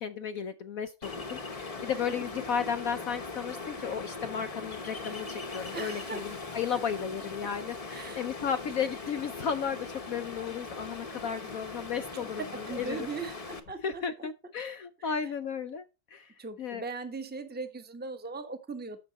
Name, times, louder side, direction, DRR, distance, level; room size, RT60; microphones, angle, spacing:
voice 1, 0.0-13.1 13.8-15.8 16.1-16.8, left 7 dB, 65° left, 0.9 m, -34 dB
Ocean, 1.0-13.6, left 3 dB, 25° left, 0.8 m, -40 dB
voice 2, 5.7-6.2 7.9-8.2 12.1-12.3 12.7-14.3 15.0-15.1 16.4-19.0, right 4 dB, 5° right, 0.8 m, -39 dB
9.9 x 7.1 x 4.1 m
omnidirectional pair, 2.1 m